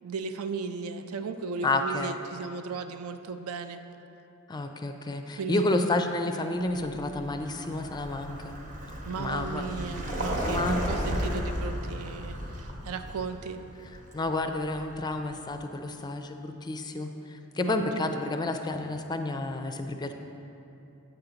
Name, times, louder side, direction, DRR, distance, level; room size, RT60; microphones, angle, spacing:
voice 1, 0.0-3.8 5.4-5.8 9.0-13.6 17.6-18.1, right 4 dB, 75° right, 8 dB, 0.5 m, -36 dB
voice 2, 1.6-2.1 4.5-8.6 9.2-9.8 10.4-11.3 14.1-20.1, left 2 dB, 20° left, 6 dB, 0.4 m, -30 dB
Vehicle, 6.7-15.5, equal, 40° right, 0.9 m, -35 dB
9.0 x 3.9 x 7.0 m, 2.8 s
head